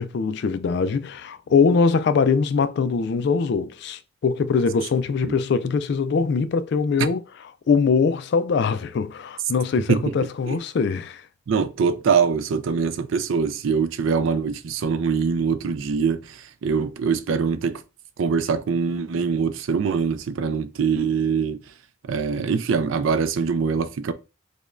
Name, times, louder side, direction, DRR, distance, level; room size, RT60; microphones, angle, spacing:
voice 1, 0.0-7.2 7.7-11.2, left 5 dB, 55° left, 0.3 m, -22 dB
voice 2, 11.5-16.2 16.6-17.8 18.2-21.6 22.1-24.1, right 5 dB, 70° right, 0.4 m, -23 dB
4.9 x 2.2 x 2.4 m
head